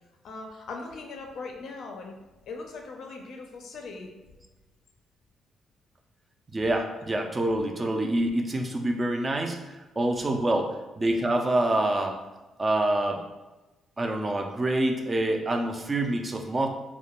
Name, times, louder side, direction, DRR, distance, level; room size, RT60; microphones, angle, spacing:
voice 1, 0.2-2.2 2.5-4.1 10.4-10.5, left 3 dB, 70° left, 2 dB, 0.4 m, -40 dB
voice 2, 6.5-12.2 12.6-13.3 14.0-16.7, right 1 dB, 25° right, 4 dB, 0.3 m, -26 dB
2.2 x 2.1 x 2.9 m, 1.1 s
cardioid pair, 90°, 0 cm